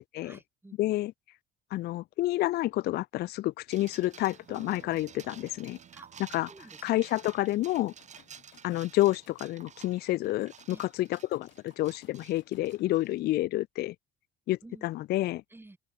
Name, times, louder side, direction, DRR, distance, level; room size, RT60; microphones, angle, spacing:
voice 1, 0.2-0.8 5.9-6.2 6.5-7.0 10.7-10.8 12.8-13.0 14.6-14.9 15.5-15.8, right 2 dB, 10° right, 7.0 m, -52 dB
voice 2, 0.8-1.1 1.7-5.8 6.3-6.5 6.8-7.9 8.6-13.9 14.5-15.4, left 16 dB, 50° left, 0.4 m, -29 dB
sound 1, 3.7-13.3, right 7 dB, 35° right, 2.2 m, -52 dB
sound 2, 4.5-8.8, right 11 dB, 50° right, 2.1 m, -58 dB
sound 3, 7.6-13.1, left 17 dB, 70° left, 5.2 m, -63 dB
open air
cardioid pair, 105°, 20 cm